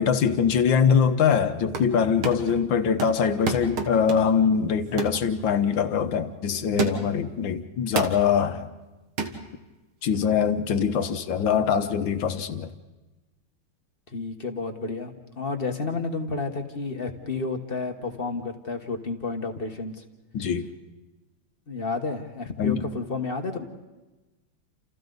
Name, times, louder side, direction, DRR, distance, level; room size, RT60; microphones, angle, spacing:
voice 1, 0.0-8.7 10.0-12.7 20.3-20.7 22.6-22.8, left 7 dB, 65° left, 1.7 m, -23 dB
sound 1, 1.5-2.0 2.2-2.6 3.0-4.4 5.0-5.2 5.7-5.9 6.8-7.2 8.0-8.3 9.2-9.4, right 4 dB, 75° right, 2.5 m, -30 dB
voice 2, 14.1-20.0 21.7-23.6, left 3 dB, 30° left, 1.3 m, -31 dB
29.0 x 29.0 x 4.0 m
omnidirectional pair, 2.3 m